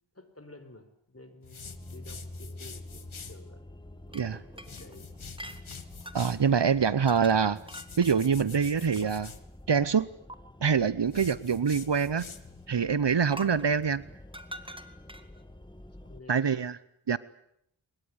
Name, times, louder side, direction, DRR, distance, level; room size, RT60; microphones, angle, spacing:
voice 1, 0.1-3.7 4.4-5.3 16.0-16.7, left 2 dB, 30° left, 9 dB, 4.3 m, -51 dB
sound 1, 1.4-3.4 4.6-6.5 7.6-9.4 11.1-12.7, left 6 dB, 85° left, 1.8 m, -46 dB
sound 2, 1.6-16.2, left 1 dB, 10° left, 1.6 m, -49 dB
sound 3, 4.1-6.3 7.0-7.4 7.7-9.4 10.3-10.4 13.3-15.4, right 1 dB, 10° right, 2.0 m, -45 dB
voice 2, 6.1-7.6 8.0-9.3 9.7-10.1 10.6-12.3 12.7-14.0 16.3-16.8 17.1-17.2, right 6 dB, 60° right, 18 dB, 0.9 m, -25 dB
23.5 x 21.5 x 9.8 m, 0.74 s
wide cardioid pair, 65°, 48 cm